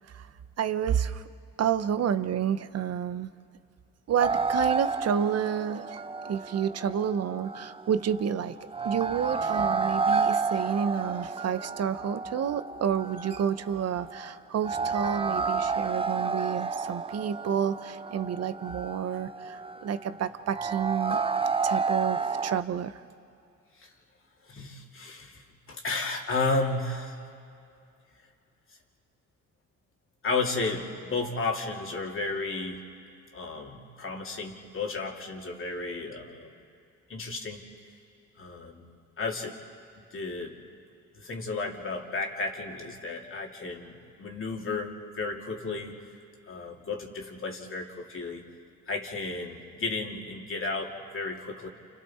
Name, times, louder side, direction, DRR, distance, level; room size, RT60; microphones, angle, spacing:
voice 1, 0.6-1.2 1.6-3.3 4.1-8.6 8.8-21.2 21.6-23.0, right 8 dB, 55° right, 12 dB, 0.9 m, -30 dB
sound 1, 4.2-22.6, right 4 dB, 20° right, 0.6 m, -31 dB
voice 2, 24.4-27.2 30.2-32.8 33.3-36.6 37.1-37.6 38.4-39.5 40.1-40.5 41.1-46.0 46.5-48.4 48.9-51.7, left 3 dB, 45° left, 0 dB, 2.8 m, -33 dB
29.0 x 28.0 x 4.4 m, 2.5 s
cardioid pair, 90°, 30 cm